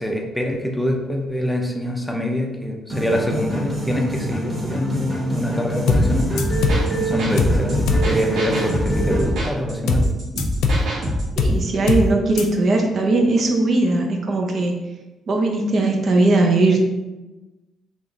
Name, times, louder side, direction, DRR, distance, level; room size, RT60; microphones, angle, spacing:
voice 1, 0.0-6.3 7.0-10.1, equal, 5° left, 1 dB, 0.6 m, -24 dB
sound 1, 2.9-9.3, right 1 dB, 30° right, 1.5 m, -27 dB
sound 2, 5.9-6.1 6.4-6.9 7.4-7.6 7.9-8.1 9.9-10.1 10.4-10.9 11.4-11.6 11.9-12.1 12.4-12.5, left 3 dB, 85° left, 0.4 m, -19 dB
sound 3, 6.0-11.4, equal, 85° right, 1.1 m, -25 dB
voice 2, 11.4-14.8 15.3-16.8, right 2 dB, 55° right, 2 dB, 0.6 m, -19 dB
3.5 x 2.4 x 3.9 m, 1.1 s
cardioid pair, 90°, 0 cm